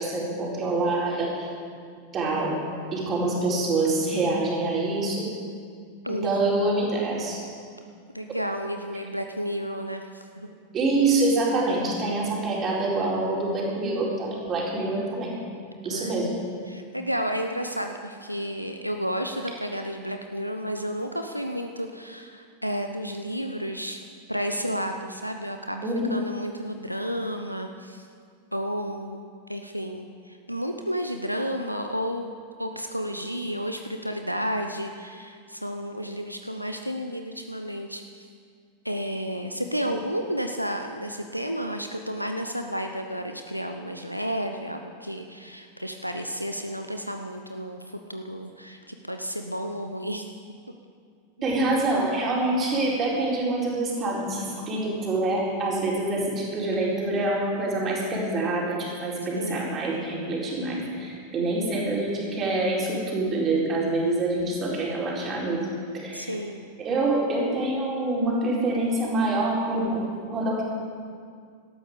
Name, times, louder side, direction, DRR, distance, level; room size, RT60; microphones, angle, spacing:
voice 1, 0.0-1.5 2.1-2.6 2.9-5.3 6.1-7.4 10.7-15.4 15.8-16.3 25.8-26.2 39.8-39.9 51.4-65.7 65.9-66.3 66.8-70.6, right 2 dB, 25° right, -4 dB, 4.5 m, -26 dB
voice 2, 6.0-6.6 8.1-10.5 15.9-16.1 16.7-24.0 24.3-28.1 28.5-32.3 32.6-38.0 38.8-50.6 59.4-59.7 66.1-66.7, equal, 90° right, 5 dB, 0.7 m, -32 dB
18.0 x 13.0 x 5.2 m, 2.1 s
figure-of-eight pair, 90°, 0 cm